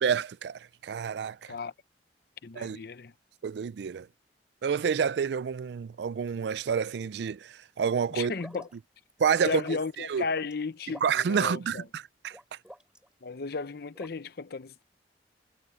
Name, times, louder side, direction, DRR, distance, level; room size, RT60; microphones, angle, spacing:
voice 1, 0.0-1.5 2.6-2.8 3.4-4.1 4.6-8.3 9.2-10.2 11.0-12.4, right 7 dB, 70° right, 0.4 m, -29 dB
voice 2, 2.4-3.1 8.1-8.7 9.4-11.8 13.2-14.8, left 4 dB, 60° left, 0.7 m, -34 dB
sound 1, 7.2-7.6 8.3-8.8 9.1-9.2 9.6-10.5 10.8-11.3 12.3-13.1 13.9-14.1, equal, 5° right, 3.1 m, -48 dB
head